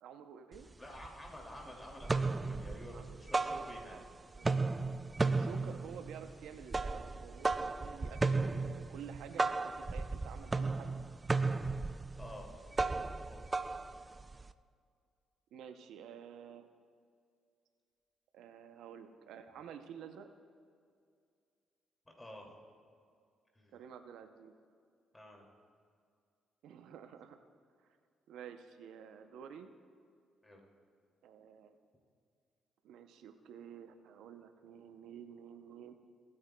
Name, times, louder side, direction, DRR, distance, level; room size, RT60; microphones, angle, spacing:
voice 1, 0.0-0.7 2.9-3.2 3.9-4.0 4.4-4.5 5.2-11.0 11.7-11.8 15.5-16.7 18.3-20.3 23.7-24.5 26.6-27.4 28.3-29.7 31.2-31.8 32.8-36.0, right 8 dB, 85° right, 8 dB, 0.6 m, -50 dB
sound 1, 0.5-0.6 1.0-1.6 1.9-4.1 4.4-14.5, right 3 dB, 25° right, 0.3 m, -35 dB
voice 2, 0.8-4.1 12.2-12.6 13.3-13.5 22.0-22.5 23.5-23.8 25.1-25.5 30.4-30.6, left 1 dB, 15° left, -1 dB, 2.4 m, -50 dB
23.5 x 8.7 x 2.2 m, 2.3 s
cardioid pair, 90°, 0 cm